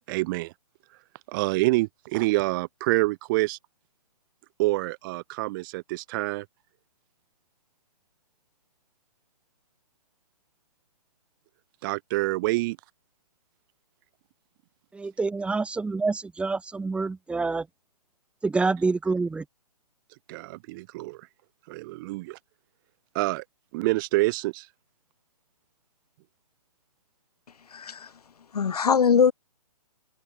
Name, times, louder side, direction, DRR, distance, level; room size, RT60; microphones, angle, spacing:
voice 1, 0.1-0.5 1.3-3.6 4.6-6.5 11.8-12.8 20.3-21.2 21.7-22.4 23.1-23.4 23.7-24.7, right 21 dB, 35° right, 2.0 m, -27 dB
voice 2, 14.9-17.7 18.4-19.5, right 3 dB, 5° right, 1.9 m, -27 dB
voice 3, 27.7-28.1 28.5-29.3, left 6 dB, 75° left, 1.0 m, -21 dB
hypercardioid pair, 135°, 20 cm